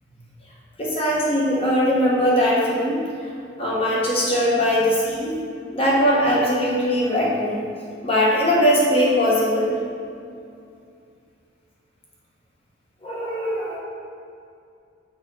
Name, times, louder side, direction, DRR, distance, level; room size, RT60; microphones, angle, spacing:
voice 1, 0.8-3.0 3.6-5.4 5.7-7.6 8.0-9.7 13.0-13.8, equal, 30° left, -5 dB, 1.3 m, -20 dB
6.1 x 5.3 x 3.9 m, 2.4 s
head